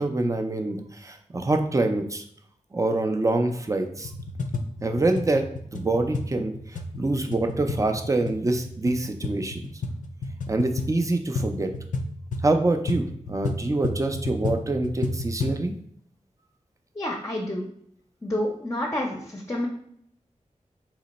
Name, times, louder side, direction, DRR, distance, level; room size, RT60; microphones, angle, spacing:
voice 1, 0.0-2.2 2.7-4.1 4.8-5.4 5.7-6.5 6.9-9.6 10.5-11.7 12.4-15.7, right 2 dB, 25° right, 5 dB, 0.4 m, -25 dB
sound 1, 4.0-15.7, left 2 dB, 75° left, 0.4 m, -32 dB
voice 2, 17.0-17.7 18.2-19.7, left 1 dB, 25° left, -1 dB, 0.6 m, -29 dB
2.9 x 2.1 x 4.0 m, 0.67 s
cardioid pair, 45°, 13 cm